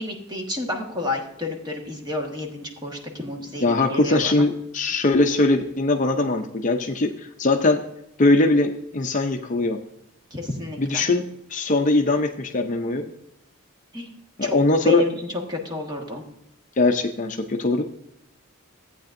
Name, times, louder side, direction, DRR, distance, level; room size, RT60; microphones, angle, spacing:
voice 1, 0.0-4.4 10.3-11.0 13.9-14.1 14.4-14.5 14.8-15.1 15.5-16.2, left 2 dB, 20° right, 1 dB, 1.4 m, -31 dB
voice 2, 3.6-7.8 8.2-9.8 10.8-13.1 14.4-15.0 16.8-17.8, left 2 dB, 35° left, 4 dB, 0.5 m, -21 dB
14.5 x 8.6 x 2.6 m, 0.79 s
head